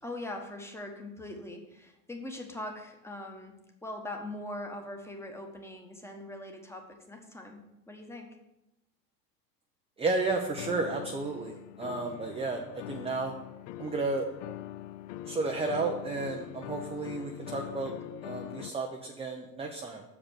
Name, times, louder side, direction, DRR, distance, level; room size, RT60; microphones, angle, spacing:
voice 1, 0.0-8.3 18.4-18.6, left 1 dB, 5° left, 2 dB, 1.2 m, -42 dB
voice 2, 10.0-13.3 13.8-14.3 15.3-17.9 18.2-20.0, right 3 dB, 10° right, 2 dB, 0.7 m, -32 dB
sound 1, 10.6-18.7, left 14 dB, 55° left, 0.5 m, -42 dB
7.2 x 5.1 x 6.5 m, 0.91 s
hypercardioid pair, 80°, 50 cm